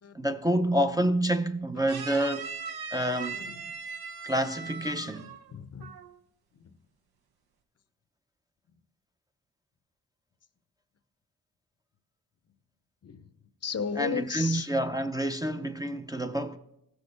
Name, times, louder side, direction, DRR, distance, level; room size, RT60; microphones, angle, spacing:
voice 1, 0.1-2.5 2.9-3.4 4.2-5.3 14.0-16.6, right 1 dB, 10° right, 0.5 m, -28 dB
sound 1, 1.9-5.5 5.8-6.1, right 5 dB, 80° right, 0.9 m, -39 dB
voice 2, 3.3-3.6 5.0-5.9 6.5-6.8 13.0-13.3 13.6-14.7, left 6 dB, 45° left, 0.6 m, -36 dB
15.0 x 6.3 x 3.3 m
cardioid pair, 60°, 37 cm